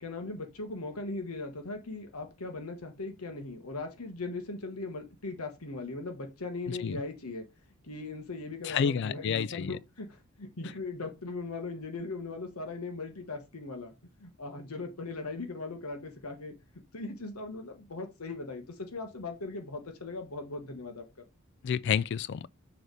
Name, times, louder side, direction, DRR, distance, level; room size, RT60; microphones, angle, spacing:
voice 1, 0.0-7.4 7.8-13.9 14.2-16.5 16.9-21.2, left 3 dB, 80° left, 1.2 m, -39 dB
voice 2, 8.6-9.8 21.6-22.5, left 7 dB, 50° left, 0.3 m, -29 dB
6.6 x 3.3 x 4.7 m
head